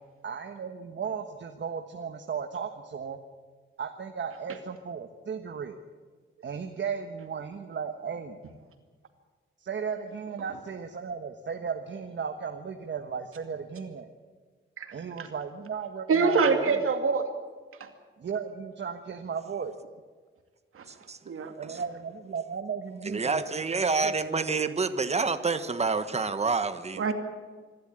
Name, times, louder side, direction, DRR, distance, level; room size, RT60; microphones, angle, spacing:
voice 1, 0.2-3.2 3.8-5.8 6.4-8.4 9.6-14.1 14.9-16.8 18.2-19.7 21.6-23.6 24.0-24.1, right 6 dB, 60° right, 5 dB, 1.4 m, -35 dB
voice 2, 16.1-17.3 17.8-17.9 20.8-20.9 21.3-21.5 27.0-27.1, right 4 dB, 90° right, 6 dB, 2.5 m, -24 dB
voice 3, 20.9-21.8 23.0-27.0, right 4 dB, 30° right, 10 dB, 1.3 m, -28 dB
25.0 x 12.5 x 9.0 m, 1.5 s
wide cardioid pair, 125°, 21 cm